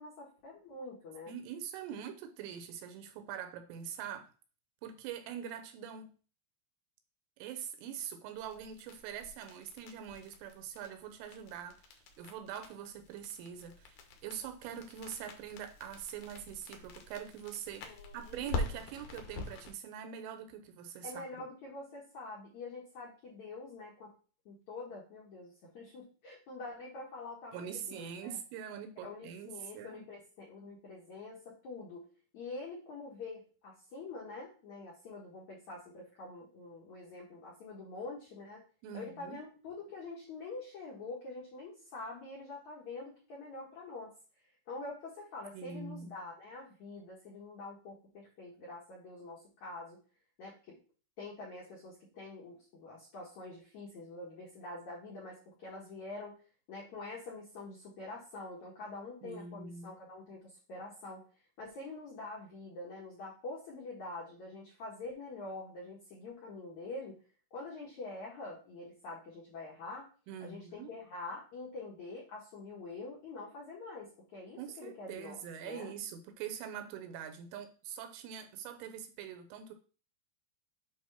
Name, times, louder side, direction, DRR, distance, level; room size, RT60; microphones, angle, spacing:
voice 1, 0.0-1.3 17.8-18.5 21.0-24.1 24.4-28.4 29.0-32.1 32.3-38.6 38.9-44.1 44.4-50.0 50.4-50.8 51.2-56.4 56.7-61.2 61.6-67.2 67.5-70.1 70.4-75.9, left 3 dB, 65° left, 1.8 m, -46 dB
voice 2, 1.3-4.3 4.8-6.1 7.4-17.9 18.1-21.2 27.5-30.1 38.8-39.4 45.5-46.1 59.2-59.9 70.3-70.9 74.6-79.7, right 8 dB, 80° right, 3.2 m, -44 dB
sound 1, 8.3-19.7, left 3 dB, 80° left, 1.9 m, -45 dB
8.8 x 3.0 x 5.6 m
omnidirectional pair, 5.8 m